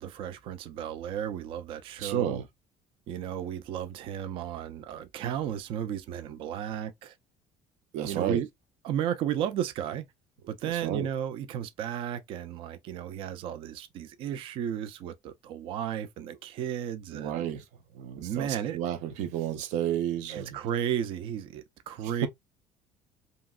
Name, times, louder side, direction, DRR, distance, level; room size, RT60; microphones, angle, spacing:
voice 1, 0.0-2.4 3.1-7.1 8.0-8.5 8.8-10.1 10.5-17.5 18.2-18.8 20.3-22.3, right 9 dB, 45° right, 0.4 m, -34 dB
voice 2, 2.0-2.5 7.9-8.4 10.6-11.1 17.1-17.6 17.9-20.6 22.0-22.3, right 10 dB, 85° right, 0.6 m, -32 dB
3.0 x 2.7 x 2.3 m
cardioid pair, 175°, 12 cm